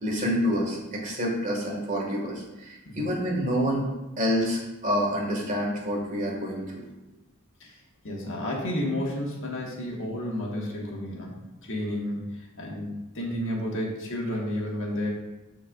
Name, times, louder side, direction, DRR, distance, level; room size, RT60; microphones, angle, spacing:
voice 1, 0.0-3.9 4.2-6.6, equal, 35° right, -2 dB, 2.0 m, -27 dB
voice 2, 8.0-11.3 11.6-15.1, left 1 dB, 60° left, -2 dB, 1.7 m, -31 dB
13.5 x 4.6 x 2.6 m, 1.0 s
head